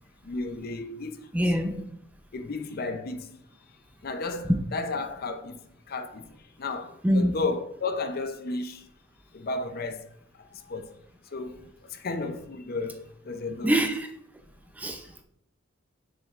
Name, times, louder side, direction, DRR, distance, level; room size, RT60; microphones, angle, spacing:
voice 1, 0.2-1.3 2.3-3.4 4.0-8.9 9.3-10.0 10.4-10.9 11.3-13.7, left 3 dB, 45° left, 0.5 m, -33 dB
voice 2, 1.3-1.9 4.5-4.6 7.0-7.3 13.6-14.1 14.8-15.2, equal, 10° right, 0.4 m, -24 dB
7.0 x 6.5 x 2.4 m
head